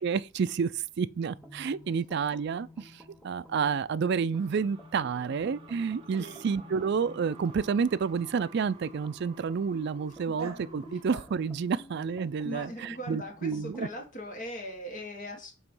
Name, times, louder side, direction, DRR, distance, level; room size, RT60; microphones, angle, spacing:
voice 1, 0.0-13.9, right 6 dB, 50° right, 0.3 m, -30 dB
sound 1, 1.3-14.1, left 1 dB, ahead, 0.8 m, -52 dB
sound 2, 4.3-11.1, right 3 dB, 25° right, 1.0 m, -52 dB
Dog, 7.3-12.6, right 4 dB, 80° right, 1.2 m, -50 dB
voice 2, 12.4-15.5, equal, 35° left, 1.6 m, -40 dB
7.9 x 3.0 x 5.4 m
head